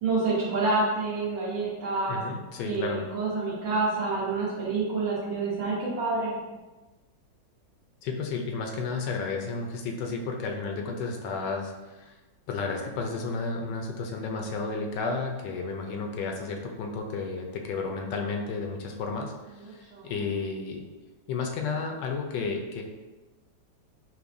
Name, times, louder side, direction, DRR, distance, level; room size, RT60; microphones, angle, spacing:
voice 1, 0.0-2.2 2.6-6.4 19.9-20.1, right 3 dB, 80° right, -7 dB, 1.5 m, -28 dB
voice 2, 2.1-3.1 8.0-12.1 12.5-20.8 21.3-22.8, left 4 dB, 75° left, 2 dB, 1.2 m, -32 dB
5.7 x 2.1 x 2.5 m, 1.1 s
omnidirectional pair, 2.0 m